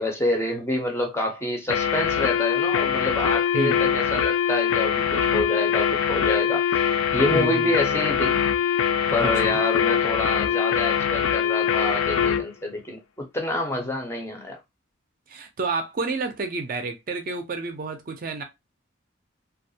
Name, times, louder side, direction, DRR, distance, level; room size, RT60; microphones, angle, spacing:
voice 1, 0.0-8.4 9.1-14.6, left 1 dB, 15° left, 0.5 m, -28 dB
sound 1, 1.7-12.5, left 8 dB, 85° left, 0.3 m, -23 dB
voice 2, 7.3-7.7 9.2-9.6 15.3-18.4, right 3 dB, 45° right, 0.4 m, -30 dB
2.3 x 2.1 x 2.6 m
head